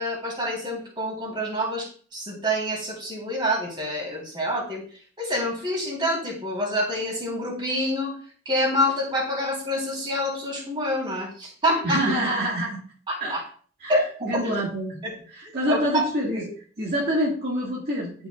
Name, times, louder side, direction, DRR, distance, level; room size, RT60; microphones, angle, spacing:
voice 1, 0.0-4.8 5.2-8.1 8.5-12.0 13.1-13.4 13.9-14.0 14.4-14.6 15.0-15.1 15.4-16.5, equal, 25° right, -3 dB, 3.7 m, -27 dB
voice 2, 11.8-12.8 13.2-13.4 13.8-13.9 14.2-15.0 15.3-16.4 16.8-18.3, equal, 55° right, -5 dB, 1.9 m, -26 dB
12.5 x 6.0 x 2.4 m, 0.44 s
head